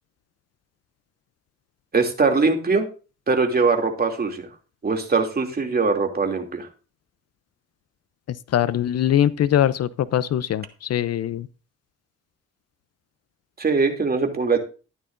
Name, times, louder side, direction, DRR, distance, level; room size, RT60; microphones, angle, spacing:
voice 1, 1.9-2.9 3.3-4.5 4.8-6.7 13.6-14.6, right 4 dB, 30° right, 2.7 m, -21 dB
voice 2, 8.3-11.5, left 11 dB, 55° left, 0.6 m, -22 dB
14.0 x 11.0 x 2.6 m
cardioid pair, 90°, 30 cm